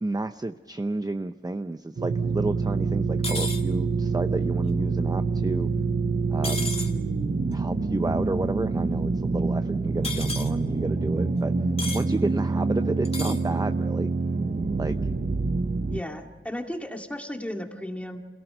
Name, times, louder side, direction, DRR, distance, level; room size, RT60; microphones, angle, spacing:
voice 1, 0.0-5.7 6.3-6.7 7.5-11.5 11.9-14.1 14.8-15.0, right 2 dB, 20° right, 9 dB, 0.6 m, -30 dB
sound 1, 2.0-16.0, right 4 dB, 45° right, 0.9 m, -26 dB
sound 2, 3.2-3.6 6.4-6.9 10.0-10.5 11.8-12.0 13.0-13.4, left 2 dB, 30° left, 1.8 m, -32 dB
voice 2, 15.9-18.2, left 1 dB, 5° left, 3 dB, 2.3 m, -34 dB
27.5 x 17.5 x 6.8 m, 1.3 s
wide cardioid pair, 85°, 21 cm